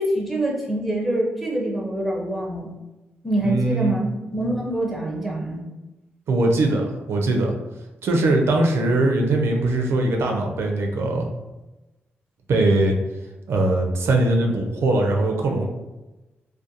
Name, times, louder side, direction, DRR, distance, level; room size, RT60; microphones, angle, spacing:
voice 1, 0.0-2.7 3.2-5.6, right 1 dB, ahead, -3 dB, 0.5 m, -25 dB
voice 2, 3.4-3.9 6.3-7.5 8.0-11.3 12.5-13.0 13.5-15.7, right 2 dB, 70° right, 2 dB, 0.4 m, -21 dB
2.4 x 2.2 x 2.7 m, 1.1 s
wide cardioid pair, 125°, 4 cm